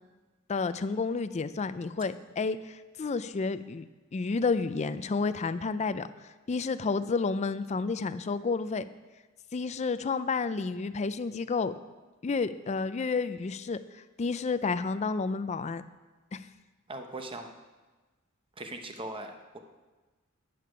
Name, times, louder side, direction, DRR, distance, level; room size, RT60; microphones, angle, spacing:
voice 1, 0.5-3.8 4.1-6.1 6.5-8.8 9.5-11.7 12.2-13.8 14.2-15.8 16.3-16.4, left 4 dB, 35° left, 12 dB, 0.4 m, -30 dB
voice 2, 16.9-17.5 18.6-19.6, right 2 dB, 25° right, 5 dB, 0.8 m, -40 dB
11.0 x 8.6 x 5.1 m, 1.2 s
head